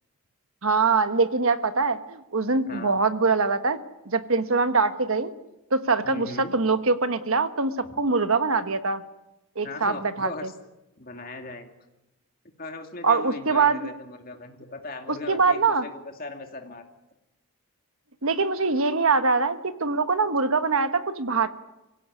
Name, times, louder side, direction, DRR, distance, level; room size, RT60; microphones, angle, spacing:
voice 1, 0.6-3.8 4.0-5.3 5.7-9.0 9.5-10.5 13.0-13.8 15.1-15.8 18.2-21.5, right 4 dB, 70° right, 10 dB, 1.4 m, -23 dB
voice 2, 6.0-6.5 9.6-10.5 11.0-11.7 12.6-15.9 16.2-16.8, left 2 dB, 40° left, 4 dB, 2.6 m, -38 dB
24.5 x 16.5 x 9.6 m, 0.98 s
head